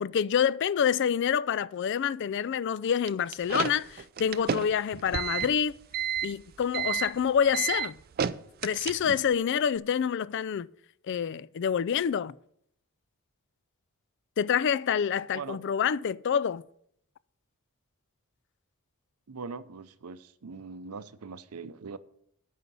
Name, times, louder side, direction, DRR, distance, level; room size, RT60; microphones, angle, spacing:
voice 1, 0.0-5.8 6.2-8.0 8.6-10.7 11.1-12.3 14.4-16.6, left 8 dB, 55° left, 0.3 m, -27 dB
sound 1, 3.1-9.3, right 8 dB, 40° right, 0.4 m, -32 dB
voice 2, 19.3-22.0, right 5 dB, 85° right, 0.6 m, -41 dB
9.3 x 5.7 x 8.3 m
head